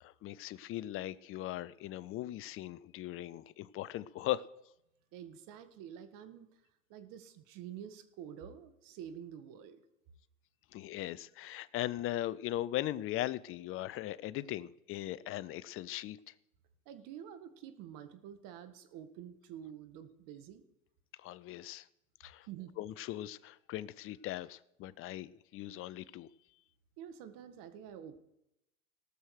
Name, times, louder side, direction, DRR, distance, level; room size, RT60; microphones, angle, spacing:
voice 1, 0.0-4.4 10.7-16.2 21.2-21.8 22.2-22.5 22.8-26.3, left 14 dB, 30° left, 0.6 m, -39 dB
voice 2, 5.1-6.5 6.9-9.8 16.9-20.6 22.5-22.7 27.0-28.2, right 9 dB, 50° right, 1.7 m, -48 dB
18.5 x 6.4 x 6.4 m
hypercardioid pair, 95°, 41 cm